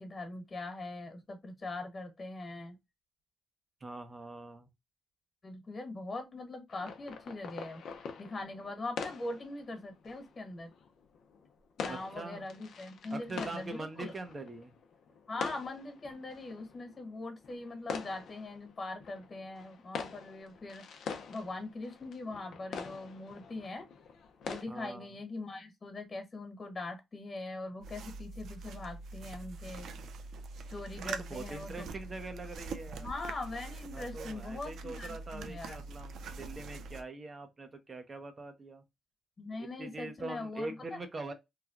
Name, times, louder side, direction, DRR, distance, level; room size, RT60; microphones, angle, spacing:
voice 1, 0.0-2.8 5.4-7.8 8.2-10.7 11.8-14.1 15.3-23.9 24.4-29.9 30.7-31.9 33.0-35.8 39.4-41.0, left 2 dB, 40° left, 1.3 m, -42 dB
voice 2, 3.8-4.7 11.9-12.5 13.1-14.7 24.7-25.1 31.0-33.1 33.9-38.8 39.6-41.3, right 2 dB, 35° right, 0.6 m, -43 dB
sound 1, 6.7-24.6, left 6 dB, 75° left, 0.6 m, -45 dB
sound 2, 27.8-37.0, right 4 dB, 75° right, 0.4 m, -44 dB
3.1 x 2.2 x 2.3 m
cardioid pair, 75°, 0 cm